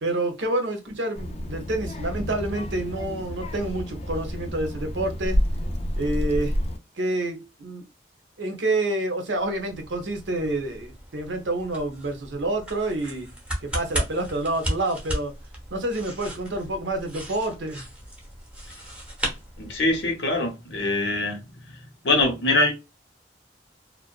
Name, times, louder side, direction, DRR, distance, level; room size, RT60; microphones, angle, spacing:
voice 1, 0.0-5.4 6.0-6.5 7.0-7.8 8.4-13.3 13.6-15.3 15.7-17.8, right 2 dB, 90° right, 0.8 m, -28 dB
Child speech kid speaking, 1.2-6.8, equal, 35° left, 0.4 m, -29 dB
sound 1, 9.4-20.1, equal, 5° right, 0.7 m, -35 dB
voice 2, 19.6-21.4 21.7-21.8 22.0-22.7, left 2 dB, 80° left, 0.8 m, -23 dB
2.4 x 2.1 x 2.3 m
head